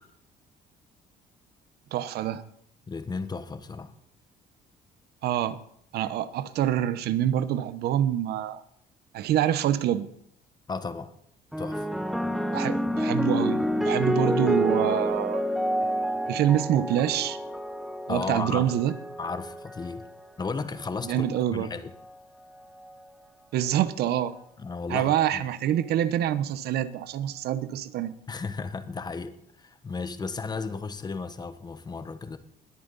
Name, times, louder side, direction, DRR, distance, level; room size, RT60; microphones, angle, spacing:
voice 1, 1.9-2.4 5.2-5.6 5.9-8.6 9.1-10.1 12.4-15.4 16.3-17.4 18.1-18.9 21.0-21.7 23.5-24.3 24.9-28.1, right 11 dB, 75° right, 15 dB, 0.9 m, -26 dB
voice 2, 2.9-3.9 10.7-11.1 11.6-11.9 18.1-18.7 19.2-20.1 20.4-21.9 24.6-25.4 28.3-32.4, left 4 dB, 25° left, 11 dB, 1.1 m, -34 dB
sound 1, 11.5-20.1 21.0-21.4, equal, ahead, 0.9 m, -28 dB
20.5 x 8.9 x 4.1 m, 0.70 s
cardioid pair, 110°, 17 cm